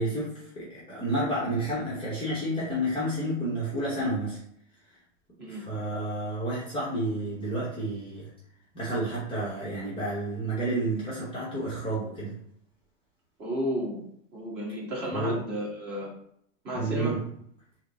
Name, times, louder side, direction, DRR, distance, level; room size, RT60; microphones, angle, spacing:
voice 1, 0.0-4.4 5.5-8.3 8.7-12.4 15.1-15.4 16.7-17.2, right 1 dB, 15° left, -8 dB, 0.8 m, -30 dB
voice 2, 13.4-16.1 16.6-17.1, equal, 25° right, -4 dB, 1.3 m, -33 dB
3.7 x 2.0 x 3.4 m, 0.68 s
supercardioid pair, 150°, 39 cm